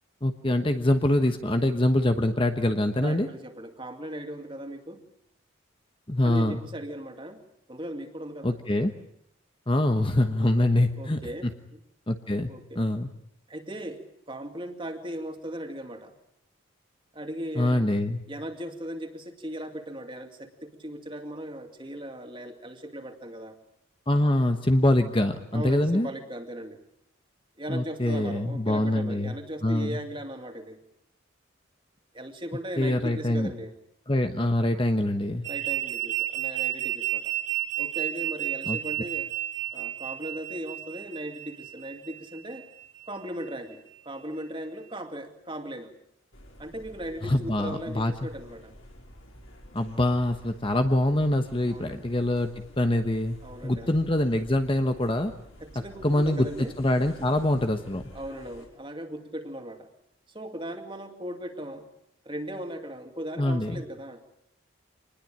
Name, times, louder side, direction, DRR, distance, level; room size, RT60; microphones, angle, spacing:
voice 1, 0.2-3.3 6.1-6.6 8.4-8.9 9.7-11.5 12.1-13.1 17.6-18.2 24.1-26.1 27.7-29.3 29.6-30.0 32.8-33.5 34.1-35.5 38.7-38.8 47.2-48.1 49.7-53.4 53.6-55.3 56.0-56.5 56.8-58.0 63.4-63.8, left 1 dB, 25° left, 7 dB, 1.2 m, -24 dB
voice 2, 3.0-5.0 6.2-7.4 7.7-8.6 10.6-10.7 10.9-11.8 12.5-12.8 13.5-16.1 17.1-17.9 18.3-23.6 25.5-26.8 27.6-30.8 32.1-33.7 35.4-37.3 37.8-39.3 39.7-42.6 43.1-45.9 46.6-48.8 51.7-52.1 53.4-54.0 55.6-56.7 58.1-59.9 60.3-61.9 62.2-64.2, right 1 dB, 25° right, 5 dB, 2.4 m, -38 dB
sound 1, 35.4-43.1, right 14 dB, 55° right, 2.2 m, -32 dB
sound 2, 46.3-58.7, equal, 75° left, 5.7 m, -50 dB
26.0 x 20.5 x 8.8 m, 0.75 s
head